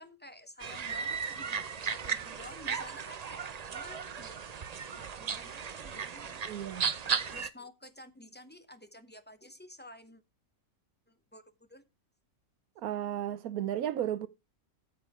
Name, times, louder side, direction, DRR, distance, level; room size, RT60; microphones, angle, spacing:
voice 1, 0.0-4.4 4.9-6.4 6.9-10.2 11.1-11.8, left 1 dB, 10° left, 0.5 m, -52 dB
sound 1, 0.6-7.5, right 6 dB, 45° right, 0.5 m, -36 dB
voice 2, 6.5-6.9 12.8-14.3, right 11 dB, 80° right, 1.2 m, -34 dB
9.4 x 6.9 x 4.8 m
omnidirectional pair, 1.5 m